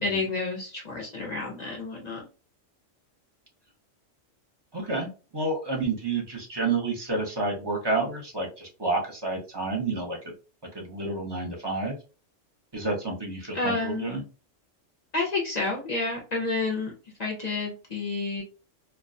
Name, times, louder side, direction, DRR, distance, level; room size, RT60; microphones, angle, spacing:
voice 1, 0.0-2.2 13.5-14.1 15.1-18.4, left 3 dB, 50° left, -1 dB, 0.5 m, -30 dB
voice 2, 4.7-10.2 10.7-12.0 12.7-14.2, right 3 dB, 30° right, 0 dB, 0.5 m, -29 dB
2.3 x 2.2 x 2.5 m, 0.34 s
omnidirectional pair, 1.3 m